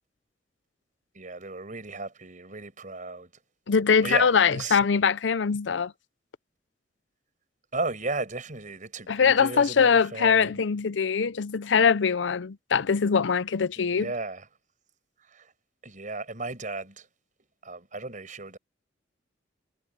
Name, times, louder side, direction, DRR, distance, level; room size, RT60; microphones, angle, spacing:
voice 1, 1.1-3.3 4.0-4.8 7.7-10.6 13.8-14.5 15.2-15.5 15.8-17.1 17.6-18.6, right 3 dB, 45° right, 5.9 m, -35 dB
voice 2, 3.7-5.9 9.1-14.1, left 6 dB, 90° left, 0.6 m, -22 dB
head